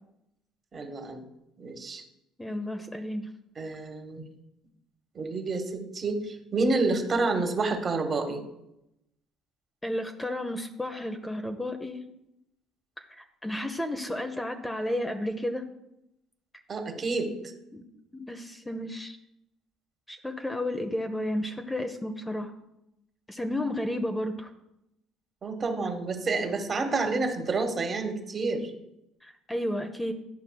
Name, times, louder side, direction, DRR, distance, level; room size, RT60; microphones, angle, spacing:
voice 1, 0.7-1.2 1.6-2.0 3.6-4.2 5.1-8.4 16.7-17.3 25.4-28.7, right 3 dB, 40° right, 5 dB, 1.4 m, -29 dB
voice 2, 2.4-3.3 9.8-12.0 13.0-15.7 17.7-17.8 18.1-19.2 20.1-22.5 23.3-24.5 29.2-30.1, left 1 dB, 10° left, 6 dB, 0.7 m, -32 dB
12.0 x 5.2 x 2.3 m, 0.86 s
hypercardioid pair, 65°, 0 cm